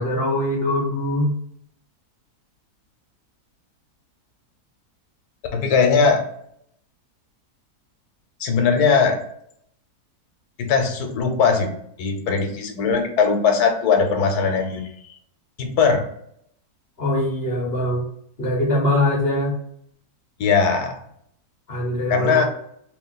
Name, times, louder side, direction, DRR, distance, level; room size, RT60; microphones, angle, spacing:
voice 1, 0.0-1.3 17.0-18.0 18.4-19.5 21.7-22.4, left 1 dB, 45° left, -1 dB, 1.1 m, -22 dB
voice 2, 5.5-6.2 8.4-9.2 10.6-11.7 12.0-15.1 15.6-16.0 20.4-20.9 22.1-22.4, left 5 dB, 75° left, 4 dB, 1.3 m, -19 dB
3.1 x 3.0 x 3.9 m, 0.69 s
omnidirectional pair, 1.7 m